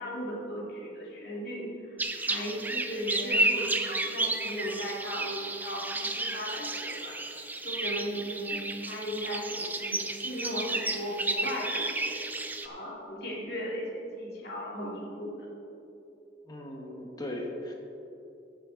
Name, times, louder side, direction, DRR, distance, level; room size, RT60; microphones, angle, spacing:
voice 1, 0.0-7.2 7.6-12.2 12.6-15.4, equal, 60° left, -4 dB, 2.3 m, -37 dB
sound 1, 2.0-12.7, right 2 dB, 10° right, 0.5 m, -32 dB
voice 2, 16.5-17.7, left 1 dB, 20° left, 0 dB, 1.3 m, -38 dB
14.5 x 7.3 x 3.9 m, 2.7 s
head